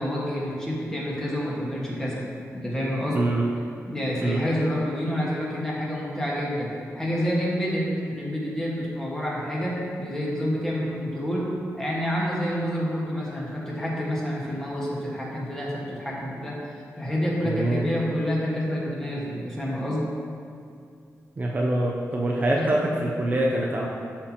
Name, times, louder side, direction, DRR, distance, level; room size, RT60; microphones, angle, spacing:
voice 1, 0.0-2.2 2.5-3.2 3.9-11.5 11.7-16.6 17.0-20.1 22.5-23.0, equal, 10° left, -6 dB, 1.6 m, -28 dB
voice 2, 17.4-17.8 21.4-23.9, right 1 dB, 30° right, -2 dB, 0.5 m, -24 dB
12.5 x 4.4 x 2.9 m, 2.4 s
wide cardioid pair, 140°, 6 cm